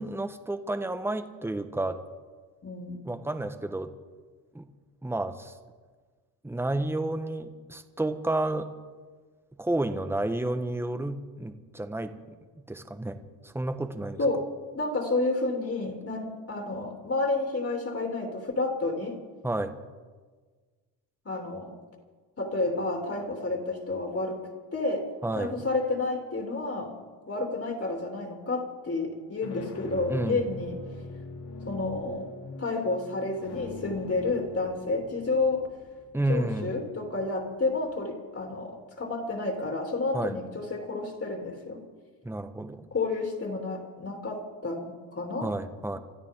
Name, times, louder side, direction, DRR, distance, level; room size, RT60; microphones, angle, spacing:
voice 1, 0.0-2.0 3.0-3.9 4.5-4.7 5.0-5.5 6.4-8.7 9.6-12.4 12.7-14.2 19.4-19.8 25.2-25.5 30.1-30.4 36.1-36.8 40.1-40.4 42.2-42.9 45.4-46.0, right 2 dB, 5° right, 9 dB, 1.2 m, -31 dB
voice 2, 2.6-3.0 14.2-14.5 14.7-19.2 21.2-21.8 22.4-24.4 24.7-25.1 25.3-27.0 27.3-30.8 31.7-32.3 32.6-35.6 36.3-41.8 42.9-45.5, left 3 dB, 30° left, 1 dB, 3.2 m, -30 dB
sound 1, 29.1-37.8, left 2 dB, 60° left, 3.6 m, -44 dB
27.0 x 13.0 x 3.8 m, 1.5 s
supercardioid pair, 75°, 45 cm